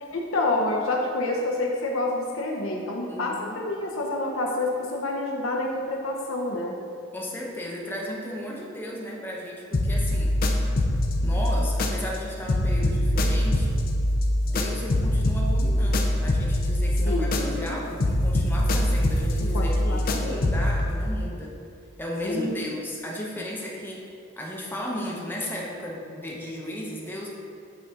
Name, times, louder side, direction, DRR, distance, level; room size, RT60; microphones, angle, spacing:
voice 1, 0.0-6.8 17.1-17.8 19.4-20.4 22.2-22.7, left 2 dB, 80° left, 0 dB, 0.7 m, -28 dB
voice 2, 3.1-3.6 7.1-10.3 11.2-13.8 14.4-21.6 22.0-27.3, equal, 10° left, -3 dB, 0.8 m, -35 dB
sound 1, 9.7-12.2 12.5-17.7 18.0-20.8, left 1 dB, 45° left, 0.5 m, -23 dB
8.1 x 4.0 x 3.7 m, 2.4 s
head